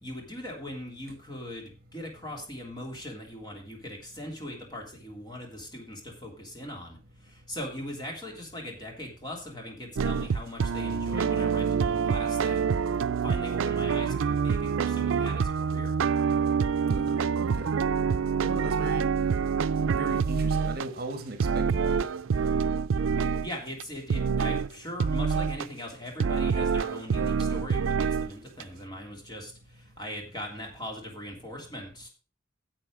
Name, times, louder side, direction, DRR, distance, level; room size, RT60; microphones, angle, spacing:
voice 1, 0.0-12.9 13.2-16.0 23.1-32.1, left 1 dB, 20° left, 3.1 m, -40 dB
sound 1, 10.0-20.9 21.4-23.5 23.8-23.9 24.1-24.7 25.0-25.7 26.2-28.3 28.6-28.7, right 6 dB, 85° right, 0.4 m, -26 dB
voice 2, 16.9-17.7 18.4-19.1 19.9-22.1, right 2 dB, 50° right, 1.5 m, -38 dB
10.0 x 7.7 x 5.2 m
head